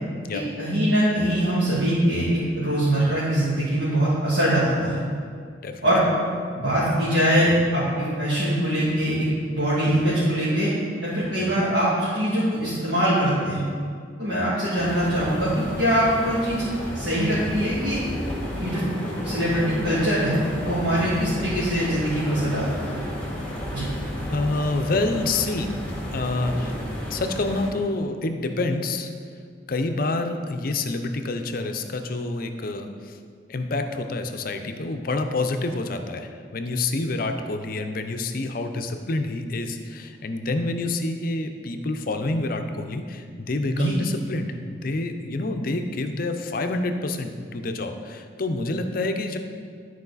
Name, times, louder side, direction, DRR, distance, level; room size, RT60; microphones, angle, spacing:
voice 1, 0.6-5.0 5.8-6.0 6.5-10.7 11.0-13.7 14.2-16.6 16.9-18.0 18.5-18.8 19.2-22.9 23.7-23.9 43.7-43.9, equal, 70° right, -11 dB, 2.3 m, -23 dB
sound 1, 14.7-27.7, left 1 dB, 10° left, 1.9 m, -32 dB
voice 2, 24.3-25.7 26.1-26.8 27.1-29.1 29.7-33.1 33.5-49.4, left 2 dB, 50° left, 6 dB, 0.6 m, -27 dB
12.5 x 4.7 x 4.1 m, 2.2 s
head